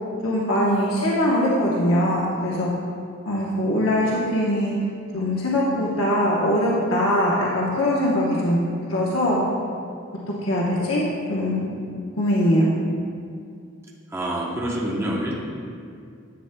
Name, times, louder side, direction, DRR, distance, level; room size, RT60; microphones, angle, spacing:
voice 1, 0.2-2.7 3.3-4.7 5.1-8.6 8.9-9.4 10.4-11.7 12.2-12.7, left 1 dB, 80° left, -5 dB, 0.9 m, -22 dB
voice 2, 14.1-15.4, right 1 dB, 15° right, -4 dB, 0.8 m, -26 dB
10.5 x 7.8 x 2.2 m, 2.4 s
head